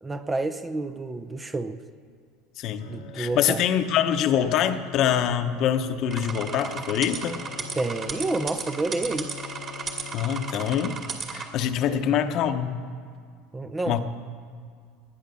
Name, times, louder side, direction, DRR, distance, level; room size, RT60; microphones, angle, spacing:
voice 1, 0.0-1.8 2.9-3.6 7.8-9.3 11.9-12.1 13.5-14.0, right 2 dB, 15° right, 10 dB, 0.6 m, -29 dB
voice 2, 2.6-2.9 3.1-7.4 10.1-11.0 11.3-12.8 13.9-14.0, left 9 dB, 50° left, 8 dB, 1.0 m, -24 dB
Bowed string instrument, 2.8-11.1, left 12 dB, 80° left, 1.4 m, -43 dB
sound 1, 6.1-11.5, right 5 dB, 35° right, 2.3 m, -35 dB
19.0 x 10.5 x 6.9 m, 2.1 s
supercardioid pair, 125°, 0 cm